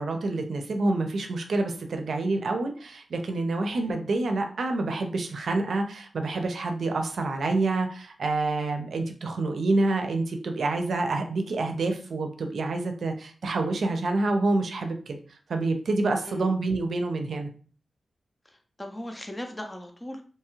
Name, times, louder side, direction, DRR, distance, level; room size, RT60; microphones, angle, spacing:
voice 1, 0.0-15.2 15.5-17.5, right 2 dB, 75° right, 5 dB, 0.5 m, -27 dB
voice 2, 18.5-20.2, left 1 dB, 15° left, 4 dB, 0.4 m, -38 dB
2.8 x 2.3 x 3.0 m, 0.41 s
wide cardioid pair, 95°, 0 cm